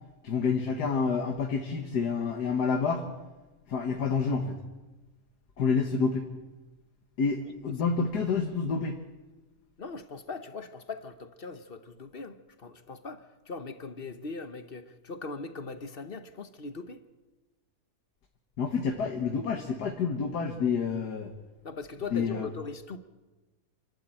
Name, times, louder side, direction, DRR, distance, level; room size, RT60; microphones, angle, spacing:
voice 1, 0.2-3.1 3.7-4.6 5.6-6.3 7.2-9.0 18.6-21.3 22.1-22.5, left 5 dB, 80° left, 2.0 m, -28 dB
voice 2, 9.8-17.0 21.6-23.0, left 4 dB, 40° left, 1.1 m, -40 dB
27.5 x 12.0 x 9.0 m
omnidirectional pair, 1.7 m